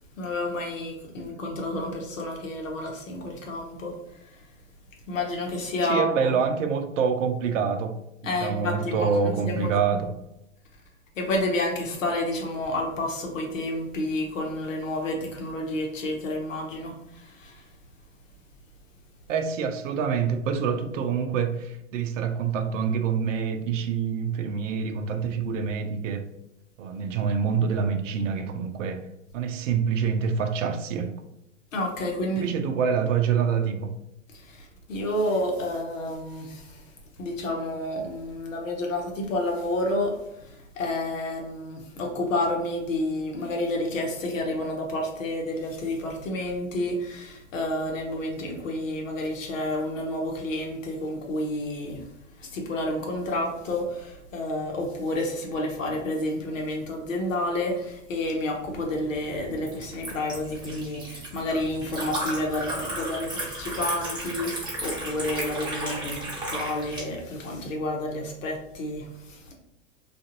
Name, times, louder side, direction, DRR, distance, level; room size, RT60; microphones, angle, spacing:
voice 1, 0.2-4.4 5.1-6.3 8.2-9.7 11.1-17.7 31.7-32.5 34.3-69.5, left 1 dB, 80° left, 0.9 m, -30 dB
voice 2, 5.9-10.1 19.3-26.2 26.8-29.0 29.3-31.1 32.4-34.0, right 6 dB, 70° right, 0.5 m, -26 dB
Liquid, 58.6-67.0, right 1 dB, 10° right, 1.1 m, -34 dB
2.4 x 2.4 x 2.7 m
hypercardioid pair, 105°, 38 cm